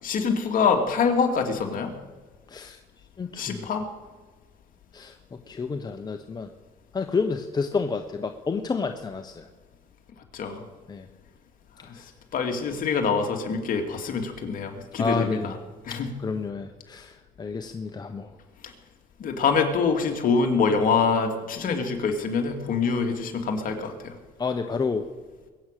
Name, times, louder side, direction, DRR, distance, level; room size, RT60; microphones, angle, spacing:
voice 1, 0.0-1.9 3.4-3.8 10.3-10.6 11.8-11.9 12.3-15.5 15.9-16.1 18.6-18.7 19.2-24.2, left 5 dB, 55° left, 4 dB, 2.4 m, -25 dB
voice 2, 2.5-2.8 3.2-3.5 4.9-5.2 5.5-6.5 6.9-9.5 10.9-11.1 15.0-15.5 16.2-18.3 24.4-25.1, left 4 dB, 25° left, 6 dB, 0.9 m, -29 dB
21.5 x 8.8 x 6.7 m, 1.4 s
cardioid pair, 110°, 17 cm